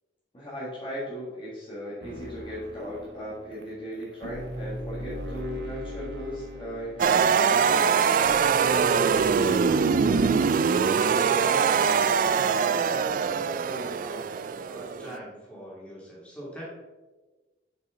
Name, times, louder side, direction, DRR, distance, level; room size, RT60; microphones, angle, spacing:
voice 1, 0.3-8.2, equal, 30° left, -8 dB, 1.8 m, -37 dB
sound 1, 2.0-10.2, equal, 75° right, 0.8 m, -41 dB
sound 2, 7.0-15.2, right 6 dB, 50° right, 0.3 m, -23 dB
voice 2, 11.0-16.6, equal, 10° left, -6 dB, 2.6 m, -43 dB
6.9 x 6.1 x 3.8 m, 1.2 s
head